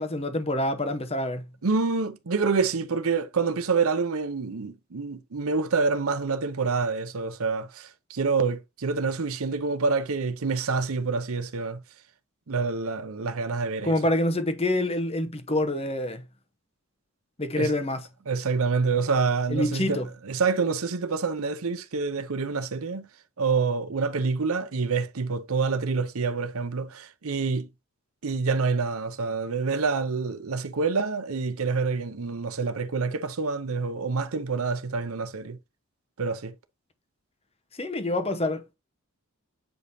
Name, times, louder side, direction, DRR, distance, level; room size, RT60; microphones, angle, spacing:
voice 1, 0.0-1.5 13.8-16.2 17.4-18.1 19.5-20.1 37.8-38.7, left 1 dB, 25° left, 0.9 m, -26 dB
voice 2, 1.6-11.8 12.5-13.9 17.6-17.7 18.3-23.1 23.4-27.7 28.2-35.6 36.2-36.5, right 4 dB, 75° right, 0.7 m, -27 dB
8.0 x 5.1 x 2.7 m
head